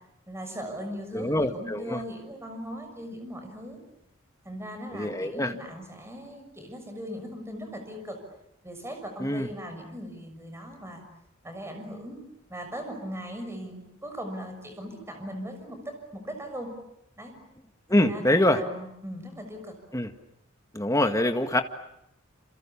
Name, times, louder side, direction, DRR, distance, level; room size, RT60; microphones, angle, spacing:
voice 1, 0.3-3.8 4.4-8.2 8.6-11.0 11.4-12.2 12.5-16.7 17.2-17.3 17.9-19.8, equal, 15° right, 5 dB, 6.4 m, -39 dB
voice 2, 1.1-2.0 4.9-5.5 9.2-9.5 17.9-18.6 19.9-20.1 20.7-21.6, left 1 dB, 15° left, 6 dB, 1.8 m, -24 dB
28.5 x 28.0 x 7.3 m, 0.78 s
head